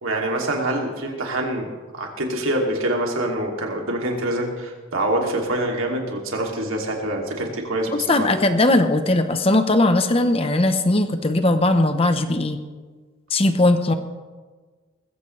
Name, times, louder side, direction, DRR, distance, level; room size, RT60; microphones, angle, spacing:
voice 1, 0.0-8.5, right 1 dB, 90° right, 0 dB, 2.7 m, -25 dB
voice 2, 7.9-12.6 13.3-13.9, left 2 dB, 30° left, 8 dB, 0.9 m, -19 dB
20.5 x 15.5 x 3.3 m, 1.4 s
head